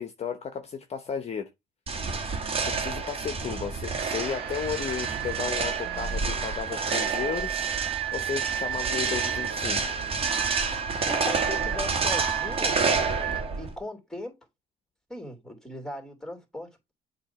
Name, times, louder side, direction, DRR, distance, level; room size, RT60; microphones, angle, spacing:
voice 1, 0.0-1.5 2.6-7.6 8.1-9.8, left 7 dB, 40° left, 0.8 m, -34 dB
sound 1, 1.9-13.7, right 4 dB, 35° right, 1.7 m, -29 dB
sound 2, 4.0-13.4, right 11 dB, 80° right, 1.0 m, -34 dB
voice 2, 11.1-12.8 13.6-14.3 15.1-16.9, left 1 dB, 5° left, 2.8 m, -39 dB
7.5 x 2.8 x 5.6 m
cardioid pair, 110°, 17 cm